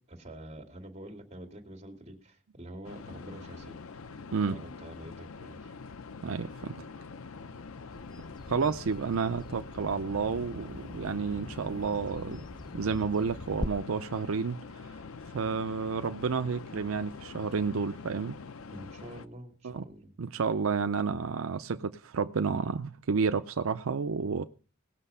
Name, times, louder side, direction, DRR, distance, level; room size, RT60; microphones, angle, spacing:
voice 1, 0.1-3.8 4.4-5.7 18.7-20.1, right 1 dB, 30° right, 2 dB, 2.5 m, -46 dB
sound 1, 2.8-19.3, left 4 dB, 90° left, 0.7 m, -45 dB
voice 2, 6.2-6.7 8.5-12.4 12.7-14.6 15.3-18.4 19.6-19.8 20.2-24.4, right 5 dB, 85° right, 10 dB, 0.5 m, -30 dB
Bird vocalization bird call bird song, 7.9-13.7, left 1 dB, 20° left, 0.6 m, -42 dB
18.5 x 6.6 x 5.6 m, 0.39 s
head